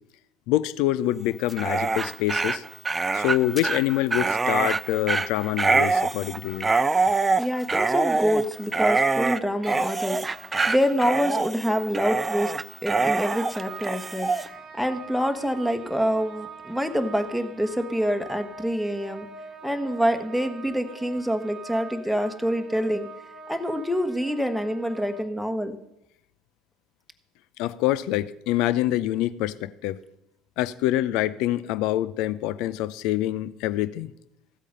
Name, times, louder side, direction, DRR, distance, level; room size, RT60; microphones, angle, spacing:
voice 1, 0.5-2.6 3.1-6.7 27.6-30.0 30.6-34.1, left 14 dB, 55° left, 0.5 m, -25 dB
Dog, 1.4-14.5, right 3 dB, 20° right, 0.5 m, -25 dB
voice 2, 7.4-12.5 12.8-19.3 19.6-23.1 23.5-25.8, equal, ahead, 1.3 m, -26 dB
sound 1, 13.2-25.2, right 3 dB, 40° right, 1.3 m, -43 dB
15.0 x 8.2 x 5.5 m
figure-of-eight pair, 60°, 0 cm